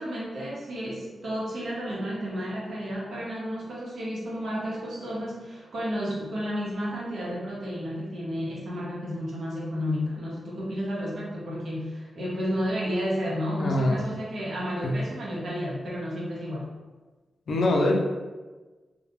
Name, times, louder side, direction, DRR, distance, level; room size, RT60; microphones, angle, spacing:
voice 1, 0.0-16.7, equal, 75° right, -6 dB, 0.8 m, -32 dB
voice 2, 13.6-14.0 14.8-14.9 17.5-18.0, left 1 dB, 75° left, 0 dB, 0.4 m, -23 dB
2.2 x 2.1 x 2.9 m, 1.3 s
cardioid pair, 90°, 0 cm